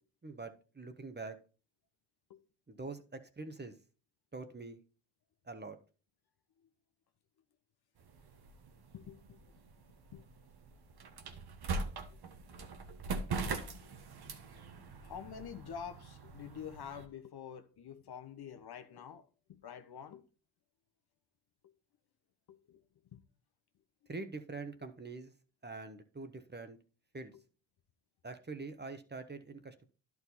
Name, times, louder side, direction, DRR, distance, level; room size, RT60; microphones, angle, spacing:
voice 1, 0.2-1.4 2.7-3.7 4.3-4.8 5.4-5.8 24.1-25.3 25.6-26.8 27.1-27.3 28.2-29.9, right 3 dB, 20° right, 1.2 m, -44 dB
sound 1, 8.0-17.1, right 3 dB, 55° right, 1.3 m, -42 dB
voice 2, 8.9-9.4 10.1-10.2 11.2-11.4 12.1-12.2 13.9-14.0 15.0-19.3 19.6-20.2 22.5-22.8 23.1-23.2, left 8 dB, 55° left, 1.1 m, -47 dB
11.0 x 4.8 x 4.1 m
supercardioid pair, 50°, 45 cm